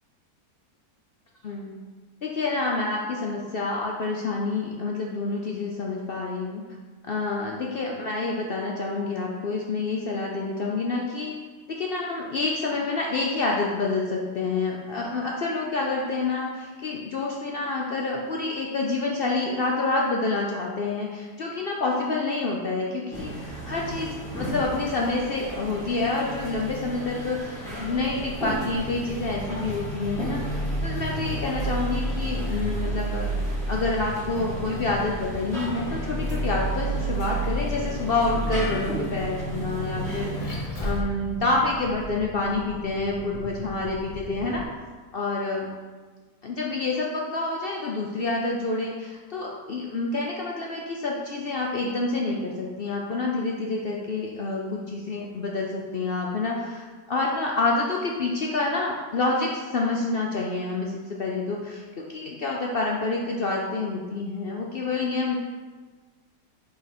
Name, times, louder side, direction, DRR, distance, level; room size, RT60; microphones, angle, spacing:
voice 1, 2.2-6.6 7.1-11.3 11.7-44.6 45.1-45.7 46.4-65.4, left 3 dB, 75° left, -2 dB, 0.5 m, -28 dB
sound 1, 23.1-40.6, right 1 dB, ahead, 1.7 m, -35 dB
Vehicle, 27.7-44.6, right 1 dB, 30° left, 0.7 m, -32 dB
5.1 x 4.8 x 4.4 m, 1.4 s
omnidirectional pair, 1.8 m